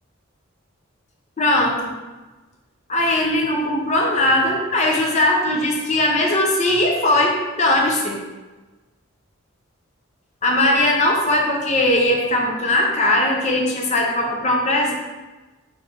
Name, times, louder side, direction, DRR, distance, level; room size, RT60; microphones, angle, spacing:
voice 1, 1.4-1.9 2.9-8.2 10.4-14.9, left 1 dB, 35° left, -1 dB, 0.7 m, -19 dB
3.9 x 3.7 x 3.1 m, 1.2 s
head